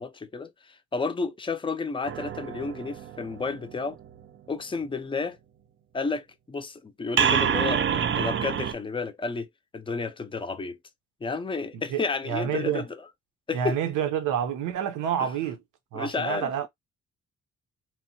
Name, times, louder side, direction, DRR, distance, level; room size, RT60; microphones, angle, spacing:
voice 1, 0.0-4.0 4.5-5.4 5.9-9.5 9.7-10.8 11.2-12.8 13.5-13.8 15.9-16.7, left 4 dB, 15° left, 0.5 m, -31 dB
sound 1, 2.0-4.1 7.2-8.7, right 8 dB, 40° right, 0.5 m, -27 dB
voice 2, 11.7-12.9 13.5-15.6 15.9-16.7, right 9 dB, 85° right, 0.7 m, -28 dB
3.0 x 2.1 x 2.7 m
cardioid pair, 90°, 30 cm